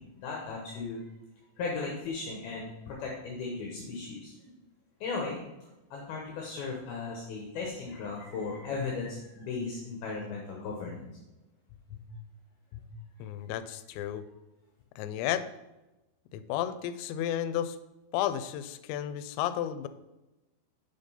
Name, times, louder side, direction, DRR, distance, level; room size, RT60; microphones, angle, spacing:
voice 1, 0.1-1.0 1.6-4.6 5.0-5.4 5.9-11.1 11.9-12.0 12.7-12.8 13.2-13.3, left 4 dB, 70° left, -1 dB, 2.6 m, -36 dB
voice 2, 13.2-14.3 15.0-15.5 16.3-17.8 18.1-19.9, left 11 dB, 90° left, 12 dB, 2.9 m, -32 dB
7.8 x 5.2 x 5.5 m, 1.0 s
omnidirectional pair, 5.1 m